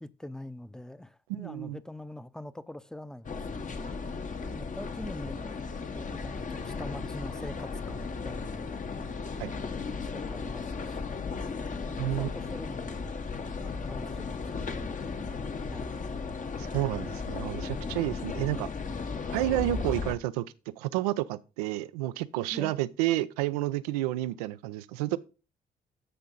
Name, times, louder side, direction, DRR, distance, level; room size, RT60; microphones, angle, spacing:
voice 1, 0.0-3.9 4.5-5.6 5.9-8.7 9.5-11.2 11.9-13.2 13.6-16.0 22.5-22.8, left 1 dB, 5° left, 0.8 m, -44 dB
voice 2, 1.3-1.8 9.4-9.5 12.0-12.3 16.6-18.7 19.3-20.5 20.8-25.2, right 16 dB, 85° right, 0.5 m, -30 dB
sound 1, 3.2-20.1, left 4 dB, 40° left, 1.2 m, -35 dB
13.0 x 5.6 x 3.9 m
hypercardioid pair, 45°, 19 cm